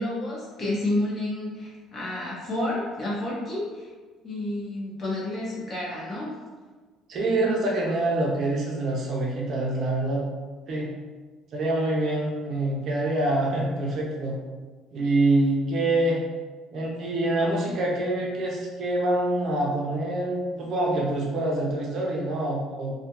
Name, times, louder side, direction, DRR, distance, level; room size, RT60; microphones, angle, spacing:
voice 1, 0.0-3.9 4.2-6.3, left 1 dB, 35° left, -6 dB, 0.8 m, -30 dB
voice 2, 7.1-10.2 10.7-10.9 11.5-14.3 14.9-16.2 16.7-22.9, right 2 dB, 50° right, -3 dB, 0.5 m, -25 dB
2.3 x 2.1 x 2.8 m, 1.4 s
cardioid pair, 140°, 0 cm